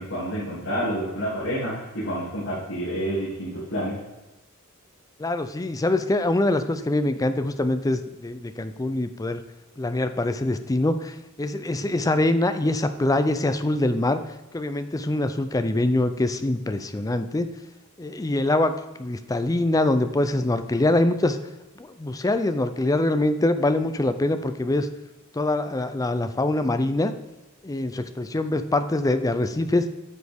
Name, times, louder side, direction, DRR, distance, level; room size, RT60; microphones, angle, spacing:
voice 1, 0.0-4.0, equal, 60° left, -9 dB, 2.7 m, -29 dB
voice 2, 5.2-9.4 9.8-14.2 14.5-17.5 18.0-18.7 19.0-21.4 21.8-24.9 25.3-27.1 27.6-29.9, left 2 dB, 15° left, 10 dB, 0.4 m, -24 dB
9.2 x 6.4 x 3.5 m, 1.1 s
head